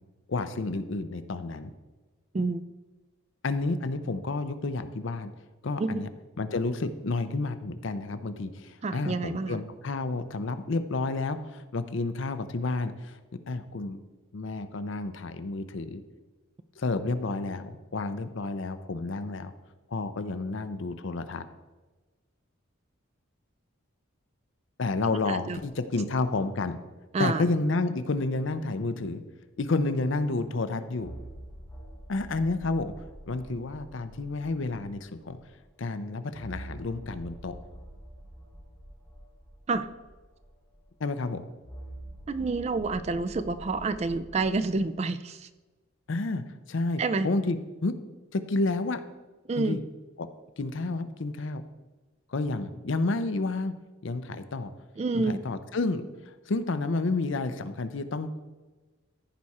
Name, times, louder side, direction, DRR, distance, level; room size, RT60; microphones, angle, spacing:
voice 1, 0.3-1.7 3.4-5.3 5.6-6.1 6.4-13.2 13.5-14.0 14.3-16.0 16.8-19.5 19.9-21.5 24.8-26.8 27.2-29.2 29.6-31.1 32.1-32.9 33.3-35.4 35.8-37.6 41.0-41.4 46.1-48.0 48.3-49.0 49.6-49.8 50.2-50.3 50.6-51.6 52.3-53.7 54.0-54.7 55.1-58.4, left 3 dB, 60° left, 11 dB, 0.5 m, -30 dB
voice 2, 8.8-9.6 25.3-25.6 27.1-27.4 39.7-39.9 42.3-45.5 47.0-47.3 49.5-49.8 55.0-55.4, right 3 dB, 30° right, 11 dB, 0.3 m, -28 dB
sound 1, 31.0-35.5 36.3-41.0 41.6-44.7, right 1 dB, 5° right, 2.7 m, -46 dB
14.5 x 4.8 x 4.2 m, 1.2 s
head